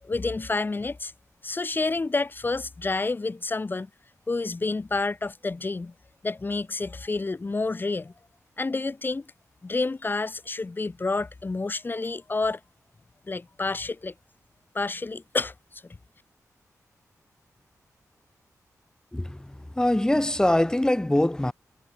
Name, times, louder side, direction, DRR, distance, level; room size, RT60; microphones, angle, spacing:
voice 1, 0.0-1.1 1.4-3.9 4.3-5.9 6.2-8.1 8.6-9.3 9.6-12.6 13.3-14.1 14.7-15.8, left 3 dB, 35° left, 3.4 m, -29 dB
voice 2, 19.1-21.5, left 1 dB, 10° left, 1.9 m, -23 dB
wide cardioid pair, 90°, 6 cm